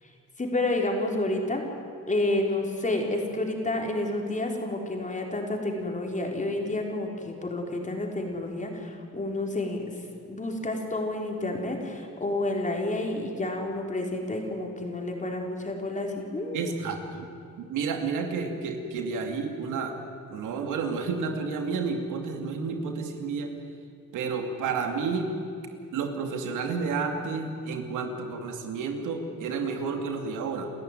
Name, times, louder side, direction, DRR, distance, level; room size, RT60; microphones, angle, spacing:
voice 1, 0.4-1.6 2.1-9.8 10.3-16.7, left 2 dB, 25° left, 1 dB, 4.5 m, -30 dB
voice 2, 16.5-17.3 17.6-20.0 20.3-23.5 24.1-25.3 25.9-30.7, right 5 dB, 85° right, 4 dB, 2.6 m, -31 dB
29.0 x 14.0 x 9.3 m, 2.4 s
cardioid pair, 90°, 30 cm